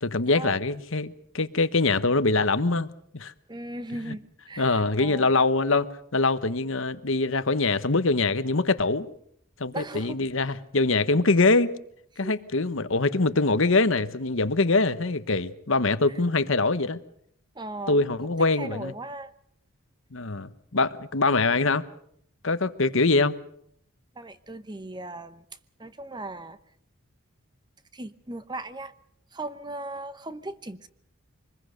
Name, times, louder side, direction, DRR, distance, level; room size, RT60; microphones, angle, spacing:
voice 1, 0.0-2.9 3.1-3.3 4.1-4.2 4.6-9.1 9.6-11.7 12.2-17.0 17.9-18.9 20.1-21.9 22.4-23.4, left 3 dB, 60° left, 1.1 m, -23 dB
voice 2, 3.5-5.4 9.7-10.2 12.2-12.3 16.1-16.2 17.5-19.3 24.1-25.4 25.8-26.6 27.9-28.9 29.3-30.9, right 2 dB, 20° right, 0.9 m, -38 dB
25.0 x 20.5 x 6.6 m
head